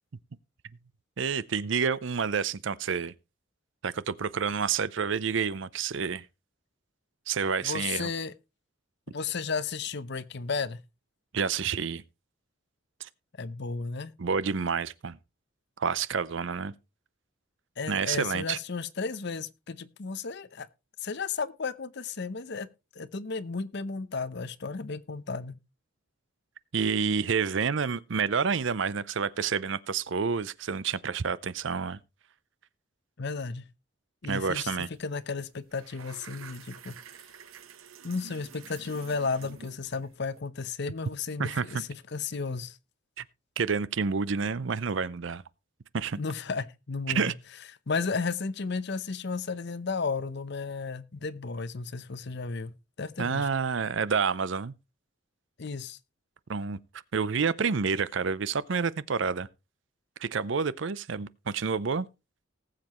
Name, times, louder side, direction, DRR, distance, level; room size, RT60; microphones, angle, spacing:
voice 1, 1.2-3.1 3.8-6.2 7.3-8.1 11.3-12.0 13.0-13.1 14.2-15.2 15.8-16.7 17.9-18.6 26.7-32.0 34.3-34.9 41.4-41.8 43.2-43.3 43.6-45.4 45.9-46.2 47.1-47.3 53.2-54.7 56.5-56.8 57.1-59.5 60.2-62.1, right 5 dB, 65° right, 0.6 m, -29 dB
voice 2, 7.6-8.3 9.1-10.8 13.4-14.1 17.8-20.7 21.0-22.7 23.0-25.5 33.2-33.7 34.2-34.7 35.0-37.0 38.0-42.8 46.2-47.3 47.9-53.5 55.6-56.0, left 4 dB, 55° left, 0.7 m, -33 dB
sound 1, 34.9-35.1 35.4-40.4, right 6 dB, 85° right, 0.9 m, -49 dB
19.0 x 7.6 x 3.0 m
head